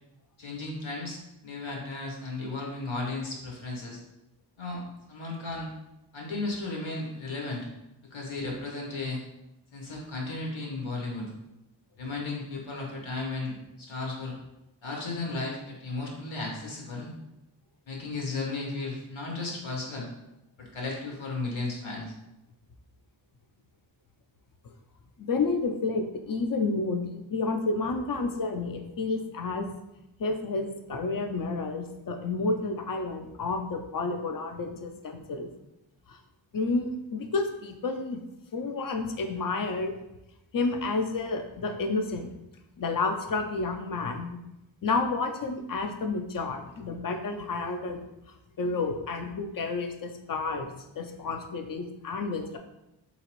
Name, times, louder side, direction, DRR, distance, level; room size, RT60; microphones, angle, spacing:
voice 1, 0.4-4.0 4.6-4.8 5.1-5.7 6.1-7.7 8.1-9.2 9.7-11.2 12.0-14.3 14.8-17.1 17.9-20.1 20.6-22.1, left 3 dB, 90° left, -1 dB, 1.1 m, -34 dB
voice 2, 25.2-29.7 30.2-35.5 36.1-36.2 36.5-38.2 38.5-39.9 40.5-42.3 42.8-44.4 44.8-48.1 48.6-52.6, left 3 dB, 50° left, 5 dB, 0.4 m, -30 dB
3.9 x 2.9 x 3.0 m, 0.90 s
wide cardioid pair, 140°, 45 cm